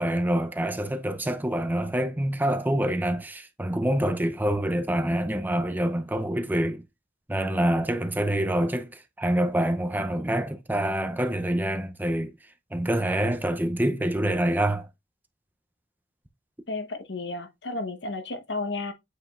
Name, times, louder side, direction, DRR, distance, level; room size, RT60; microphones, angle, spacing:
voice 1, 0.0-6.8 7.3-12.3 12.7-14.9, right 1 dB, 10° right, 0.6 m, -26 dB
voice 2, 16.7-18.9, left 2 dB, 75° left, 1.1 m, -32 dB
8.0 x 5.0 x 2.4 m
head